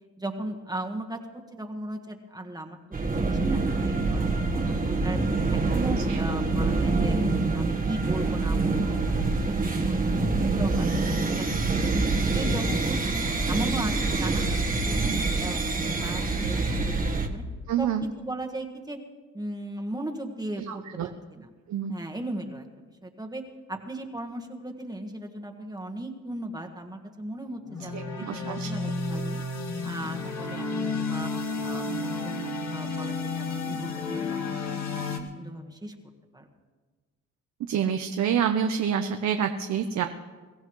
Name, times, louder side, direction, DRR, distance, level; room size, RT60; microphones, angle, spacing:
voice 1, 0.2-1.2 1.5-2.8 3.1-5.2 5.5-7.2 7.5-10.2 10.6-11.4 12.3-14.4 14.8-17.4 17.8-17.9 18.2-19.0 19.3-21.5 21.9-22.7 23.0-23.4 23.7-29.4 29.8-31.3 31.6-33.8 34.1-34.4 34.6-35.9 36.3-36.5, right 1 dB, 15° right, 2 dB, 1.5 m, -37 dB
sound 1, 2.9-17.3, right 3 dB, 30° right, 1.4 m, -26 dB
voice 2, 17.7-18.0 20.7-21.1 21.7-22.0 27.9-28.7 37.7-40.1, right 8 dB, 65° right, 6 dB, 0.9 m, -27 dB
sound 2, 27.6-35.2, left 3 dB, 60° left, 2.1 m, -31 dB
23.0 x 15.0 x 3.2 m, 1.4 s
cardioid pair, 90°, 30 cm